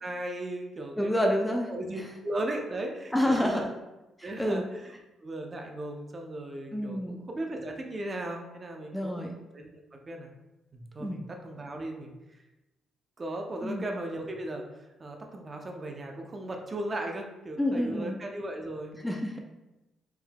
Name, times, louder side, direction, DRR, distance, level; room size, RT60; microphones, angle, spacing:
voice 1, 0.0-1.2 1.7-3.7 4.2-4.9 5.2-9.3 9.5-10.3 10.7-12.1 13.2-19.3, right 1 dB, 30° right, 2 dB, 0.7 m, -37 dB
voice 2, 1.0-1.7 3.1-3.7 4.2-4.6 6.7-7.2 8.9-9.3 11.0-11.2 13.6-13.9 17.6-18.2 19.0-19.4, left 1 dB, 5° left, 1 dB, 0.4 m, -28 dB
4.6 x 3.8 x 2.3 m, 1.0 s
cardioid pair, 90°, 0 cm